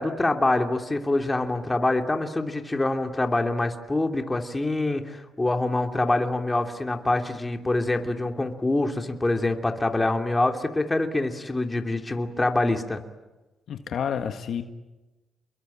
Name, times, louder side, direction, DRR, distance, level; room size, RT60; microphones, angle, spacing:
voice 1, 0.0-13.0, left 2 dB, 15° left, 5 dB, 2.9 m, -25 dB
voice 2, 13.7-14.6, left 8 dB, 65° left, 7 dB, 1.7 m, -29 dB
28.5 x 22.5 x 8.7 m, 1.1 s
cardioid pair, 90°, 0 cm